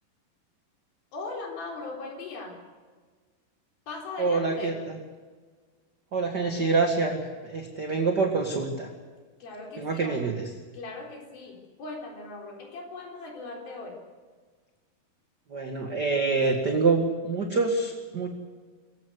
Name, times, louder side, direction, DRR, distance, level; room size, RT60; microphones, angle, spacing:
voice 1, 1.1-2.7 3.9-4.8 9.4-10.2 10.7-14.0, left 3 dB, 70° left, 1 dB, 5.8 m, -39 dB
voice 2, 4.2-5.0 6.1-8.9 9.8-10.5 15.5-18.3, right 4 dB, 35° right, 3 dB, 1.7 m, -26 dB
24.5 x 16.0 x 8.1 m, 1.4 s
omnidirectional pair, 4.5 m